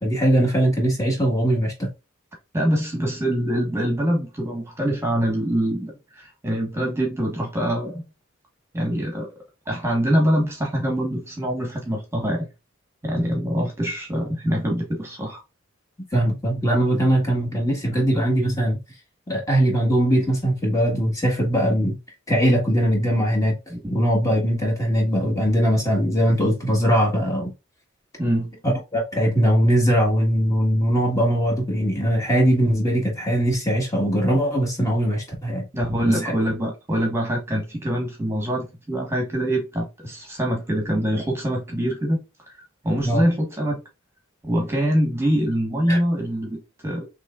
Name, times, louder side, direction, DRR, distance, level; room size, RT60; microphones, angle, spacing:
voice 1, 0.0-1.9 16.1-18.8 19.3-22.0 22.3-23.6 23.9-27.5 28.6-35.6 36.2-36.3 43.0-43.2 45.9-46.0, equal, 15° left, 1.6 m, -21 dB
voice 2, 2.5-8.0 8.7-9.3 9.7-12.5 13.0-15.4 23.7-23.8 28.2-28.5 35.7-43.8 44.4-47.1, equal, 10° right, 1.4 m, -24 dB
6.2 x 3.3 x 2.4 m
head